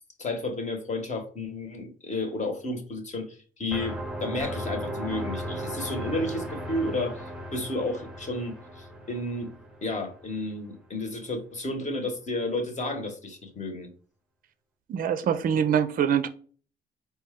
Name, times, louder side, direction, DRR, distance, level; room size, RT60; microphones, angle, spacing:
voice 1, 0.2-7.3 7.5-9.5 9.8-13.9, left 2 dB, 35° left, 1.0 m, -32 dB
sound 1, 3.7-10.4, equal, 5° right, 0.7 m, -36 dB
voice 2, 14.9-16.3, right 8 dB, 45° right, 0.4 m, -24 dB
4.0 x 2.2 x 3.6 m
cardioid pair, 90°, 20 cm